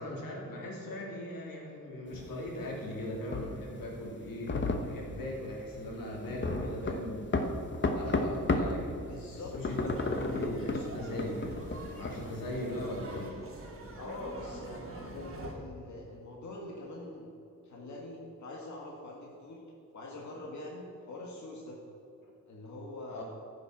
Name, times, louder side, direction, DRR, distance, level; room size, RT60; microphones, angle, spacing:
voice 1, 0.0-11.7 11.9-13.4 23.1-23.2, left 1 dB, 90° left, -2 dB, 3.1 m, -39 dB
sound 1, 2.1-8.8 9.1-13.3, left 3 dB, 35° left, 1.0 m, -33 dB
voice 2, 9.0-9.6 12.3-12.7 13.9-17.3 17.6-19.6 19.9-21.8 22.5-23.2, left 2 dB, 60° left, -2 dB, 1.8 m, -44 dB
sound 2, 9.7-15.5, right 2 dB, 40° right, 1.8 m, -45 dB
15.0 x 6.8 x 6.1 m, 2.7 s
wide cardioid pair, 150°, 33 cm